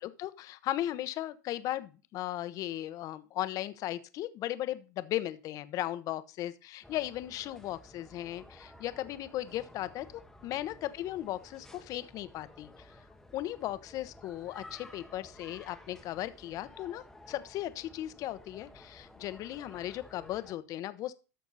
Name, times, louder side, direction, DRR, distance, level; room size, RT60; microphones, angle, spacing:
voice 1, 0.0-12.7 13.3-21.1, left 14 dB, 40° left, 13 dB, 0.9 m, -37 dB
sound 1, 6.8-20.5, left 1 dB, 5° left, 1.1 m, -54 dB
12.5 x 6.6 x 4.1 m, 0.33 s
supercardioid pair, 125°, 9 cm